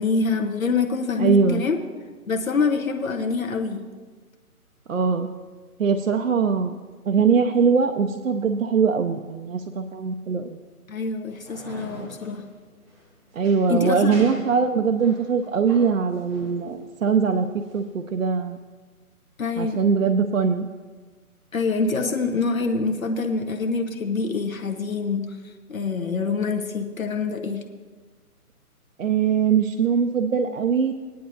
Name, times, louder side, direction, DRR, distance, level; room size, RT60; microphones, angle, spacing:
voice 1, 0.0-1.8 2.3-3.8 10.9-12.4 13.7-14.3 19.4-19.8 21.5-25.3 25.7-27.6, left 4 dB, 65° left, 4 dB, 1.1 m, -25 dB
voice 2, 1.2-1.6 4.9-5.3 5.8-6.7 7.1-10.6 13.3-18.6 19.6-20.7 29.0-30.9, right 6 dB, 60° right, 5 dB, 0.6 m, -22 dB
sound 1, 11.3-18.1, equal, 5° right, 0.7 m, -44 dB
18.5 x 10.0 x 2.7 m, 1.4 s
figure-of-eight pair, 140°, 45 cm